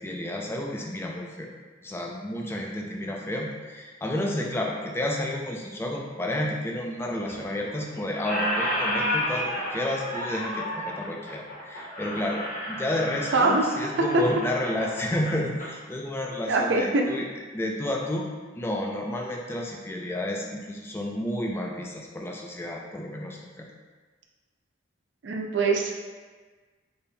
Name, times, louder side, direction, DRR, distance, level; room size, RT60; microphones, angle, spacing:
voice 1, 0.0-1.5 1.8-17.2 17.5-18.3 18.5-23.7, left 1 dB, 10° left, 0 dB, 0.3 m, -31 dB
Squeak, 7.3-7.8 8.1-15.7, equal, 40° left, 0.9 m, -31 dB
voice 2, 13.3-13.6 14.0-14.2 16.5-17.1 25.2-25.9, right 3 dB, 65° right, 1 dB, 0.4 m, -23 dB
4.1 x 3.4 x 2.2 m, 1.4 s
head